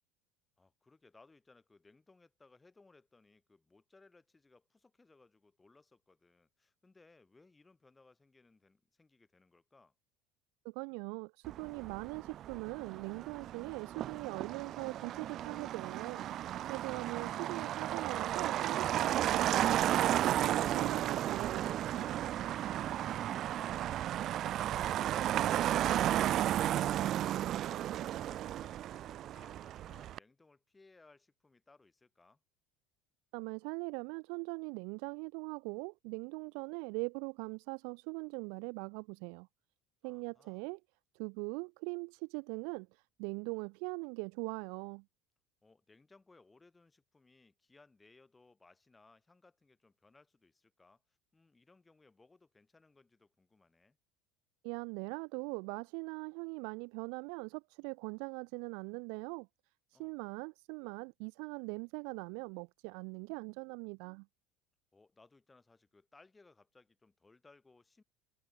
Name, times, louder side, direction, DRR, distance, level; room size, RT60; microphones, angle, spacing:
voice 1, 0.6-9.9 22.9-27.4 27.7-32.4 40.0-40.7 45.6-54.0 59.9-60.1 64.9-68.0, left 3 dB, 10° left, 6.4 m, -64 dB
voice 2, 10.6-22.3 33.3-39.5 40.0-40.8 41.1-45.0 54.6-59.5 59.9-64.3, right 40 dB or more, 65° right, 1.5 m, -41 dB
Motor vehicle (road), 11.4-30.2, right 12 dB, 35° right, 0.5 m, -34 dB
cardioid pair, 175°, 0 cm